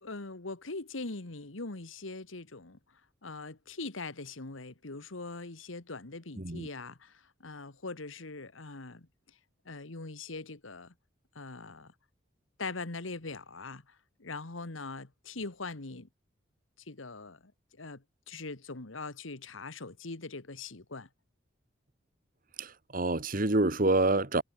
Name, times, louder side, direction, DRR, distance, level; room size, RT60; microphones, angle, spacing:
voice 1, 0.0-9.4 9.6-10.9 11.3-11.9 12.6-16.1 16.8-21.1, left 3 dB, 80° left, 1.7 m, -42 dB
voice 2, 6.4-6.7 22.6-24.4, right 2 dB, 45° right, 1.7 m, -27 dB
head